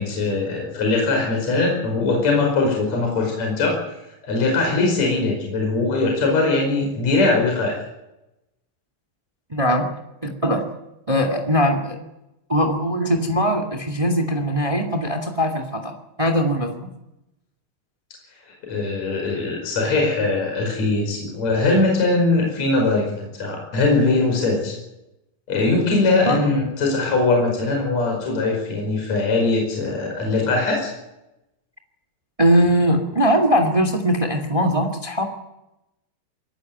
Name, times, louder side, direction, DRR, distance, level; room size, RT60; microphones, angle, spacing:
voice 1, 0.0-3.9 4.2-7.7 18.6-24.8 25.5-30.9, left 3 dB, 40° left, 1 dB, 6.2 m, -21 dB
voice 2, 9.5-9.9 10.2-10.6 11.1-12.0 12.5-16.9 26.2-26.4 32.4-35.2, equal, 60° right, 4 dB, 0.3 m, -20 dB
22.5 x 17.5 x 9.3 m, 0.93 s
omnidirectional pair, 5.1 m